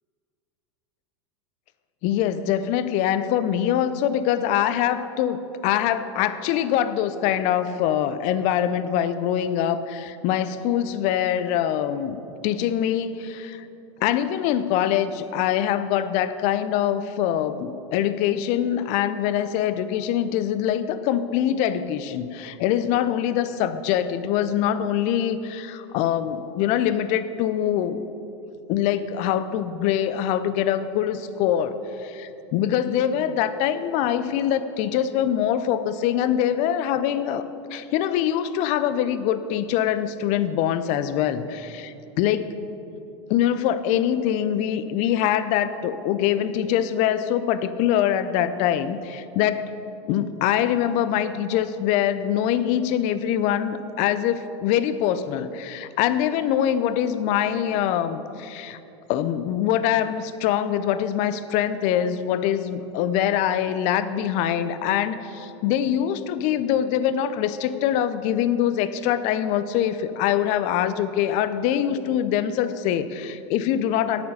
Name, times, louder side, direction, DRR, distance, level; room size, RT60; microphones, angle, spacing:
voice 1, 2.0-13.7 14.0-28.0 28.7-31.8 32.0-37.4 37.7-42.5 43.3-49.7 50.1-58.8 59.1-74.2, left 10 dB, 50° left, 13 dB, 0.6 m, -24 dB
8.8 x 8.4 x 5.4 m, 2.9 s
hypercardioid pair, 95°, 15 cm